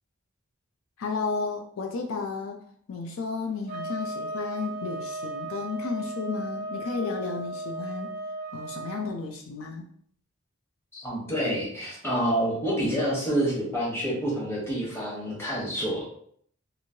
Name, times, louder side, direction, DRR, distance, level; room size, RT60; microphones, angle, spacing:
voice 1, 1.0-2.6 2.9-8.1 8.5-9.8, left 4 dB, 80° left, 3 dB, 0.4 m, -33 dB
sound 1, 3.7-9.1, right 2 dB, 45° right, 0.4 m, -36 dB
voice 2, 10.9-16.1, equal, 15° left, -5 dB, 1.1 m, -28 dB
3.0 x 2.6 x 2.7 m, 0.62 s
head